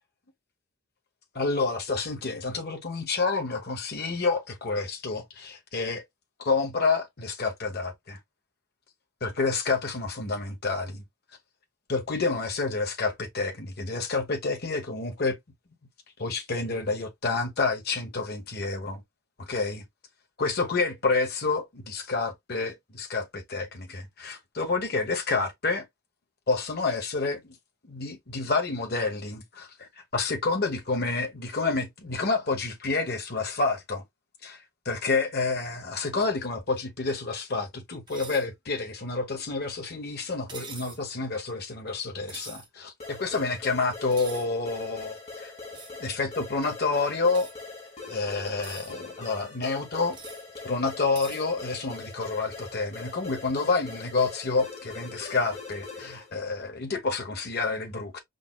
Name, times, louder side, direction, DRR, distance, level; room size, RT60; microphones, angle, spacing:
voice 1, 1.3-6.0 6.4-8.2 9.2-11.0 11.9-15.4 16.2-19.0 19.5-19.8 20.4-25.8 26.5-27.5 27.9-34.0 34.4-45.5 46.0-47.5 48.1-50.2 50.6-58.2, left 3 dB, 45° left, 0.9 m, -29 dB
sound 1, 38.1-38.5 40.5-41.0 42.3-42.7 44.1-44.5 45.7-46.0 47.3-47.5 48.4-48.9 50.1-50.4 51.1-51.4, right 4 dB, 20° right, 0.8 m, -43 dB
sound 2, 43.0-56.3, left 3 dB, 30° left, 2.3 m, -42 dB
5.0 x 3.9 x 2.2 m
head